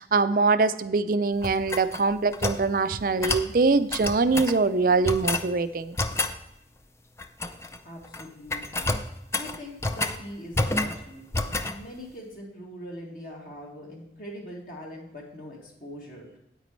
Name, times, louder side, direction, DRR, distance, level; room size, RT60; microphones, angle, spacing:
voice 1, 0.0-6.0, right 4 dB, 50° right, 12 dB, 0.5 m, -23 dB
sound 1, 1.4-2.6 3.2-3.5 3.9-4.6 5.0-5.5 6.0-6.4 7.2-7.8 8.0-8.2 8.5-10.2 10.5-11.0 11.3-11.8, left 2 dB, 15° left, 0.4 m, -29 dB
voice 2, 7.8-8.9 9.3-16.4, equal, 50° left, -2 dB, 2.2 m, -42 dB
9.2 x 8.9 x 3.2 m, 0.83 s
head